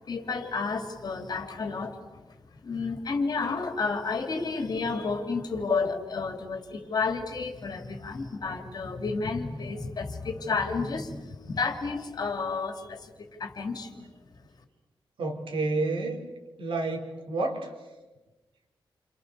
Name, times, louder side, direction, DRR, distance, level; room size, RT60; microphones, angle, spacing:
voice 1, 0.1-2.2 2.6-13.1 13.4-14.1, left 4 dB, 50° left, 5 dB, 3.2 m, -31 dB
voice 2, 15.2-16.2 16.6-17.7, right 2 dB, 85° right, 3 dB, 4.6 m, -29 dB
29.5 x 28.5 x 7.1 m, 1.1 s
wide cardioid pair, 160°, 9 cm